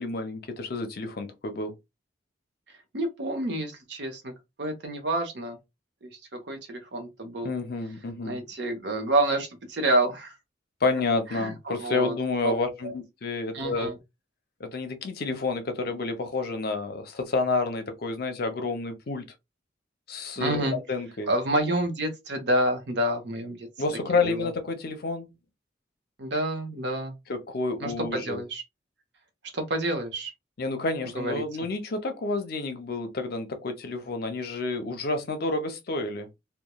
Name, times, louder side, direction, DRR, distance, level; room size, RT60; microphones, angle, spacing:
voice 1, 0.0-1.7 7.4-8.4 10.8-13.9 14.6-19.3 20.1-21.3 23.8-25.3 27.3-28.4 30.6-36.3, left 3 dB, 60° left, 0.6 m, -29 dB
voice 2, 2.9-4.3 4.6-5.6 6.0-7.5 8.2-10.4 11.3-12.2 12.4-12.5 12.8-12.9 13.5-14.0 20.4-20.8 21.3-23.7 24.2-24.5 26.2-27.2 27.8-28.6 29.5-30.3 31.1-31.4, right 1 dB, 70° right, 0.8 m, -28 dB
3.0 x 2.2 x 2.2 m
head